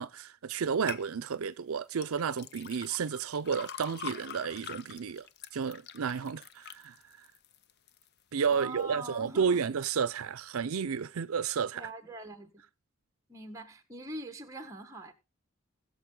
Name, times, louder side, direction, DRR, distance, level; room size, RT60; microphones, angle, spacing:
voice 1, 0.0-5.3 5.5-7.3 8.3-11.9, right 6 dB, 80° right, 0.5 m, -32 dB
sound 1, 0.9-1.1 1.9-8.1 8.5-9.0 9.5-9.6, left 8 dB, 50° left, 0.6 m, -45 dB
voice 2, 8.5-9.5 11.7-12.6 13.3-15.1, right 2 dB, 15° right, 1.4 m, -43 dB
20.0 x 6.7 x 3.8 m
head